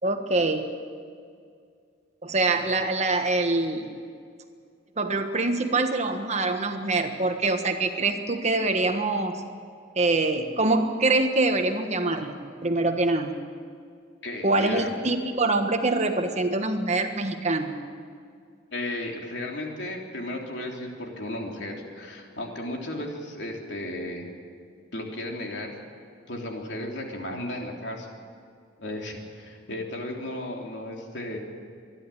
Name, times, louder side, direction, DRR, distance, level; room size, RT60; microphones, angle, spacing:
voice 1, 0.0-0.7 2.2-3.9 5.0-9.4 9.9-13.3 14.4-17.8, right 2 dB, 35° right, 6 dB, 1.5 m, -24 dB
voice 2, 14.2-14.9 18.7-24.3 24.9-25.7 26.3-28.1 28.8-31.4, left 1 dB, 65° left, 1 dB, 3.4 m, -34 dB
26.0 x 11.0 x 9.9 m, 2.2 s
head